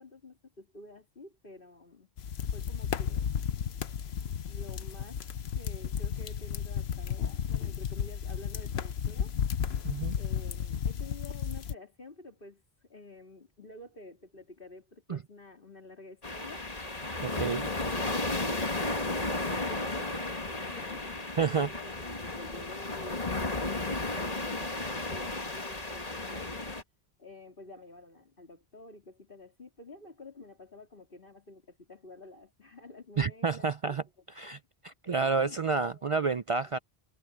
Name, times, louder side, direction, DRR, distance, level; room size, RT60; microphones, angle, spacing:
voice 1, 0.0-2.1 2.5-3.4 4.5-5.2 5.6-9.4 10.2-16.7 17.3-26.6 27.2-34.6 35.0-36.1 36.6-36.7, left 2 dB, 60° left, 3.5 m, -50 dB
sound 1, 2.2-11.7, left 8 dB, 85° left, 1.1 m, -33 dB
voice 2, 9.8-10.1 15.1-15.2 17.2-17.6 21.4-21.7 33.2-34.0 34.3-34.6 34.8-36.8, right 5 dB, 50° right, 0.4 m, -29 dB
sound 2, 16.2-26.8, left 2 dB, 40° left, 2.2 m, -34 dB
omnidirectional pair, 1.0 m